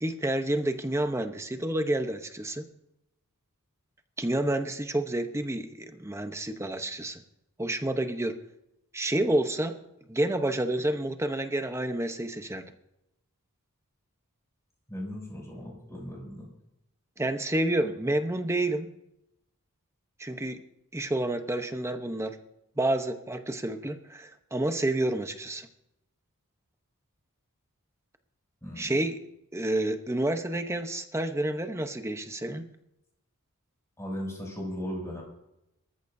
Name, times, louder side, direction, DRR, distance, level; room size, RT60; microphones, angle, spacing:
voice 1, 0.0-2.6 4.2-7.2 7.6-8.4 8.9-9.7 10.1-12.6 17.2-18.9 20.2-20.6 20.9-22.4 22.8-25.7 28.8-29.2 29.5-32.6, right 1 dB, 10° right, 7 dB, 0.8 m, -29 dB
voice 2, 14.9-16.5 28.6-28.9 34.0-35.2, equal, 15° left, -2 dB, 6.6 m, -37 dB
25.5 x 14.0 x 2.7 m, 0.85 s
head